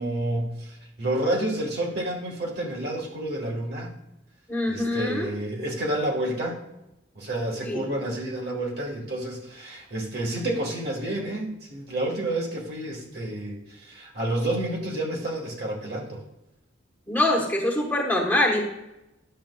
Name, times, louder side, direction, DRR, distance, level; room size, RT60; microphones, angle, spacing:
voice 1, 0.0-3.9 4.7-6.6 7.1-16.2, right 1 dB, 55° right, -1 dB, 1.5 m, -29 dB
voice 2, 4.5-5.3 7.6-7.8 17.1-18.6, left 1 dB, 10° left, -2 dB, 1.1 m, -24 dB
10.0 x 6.9 x 2.3 m, 0.90 s
head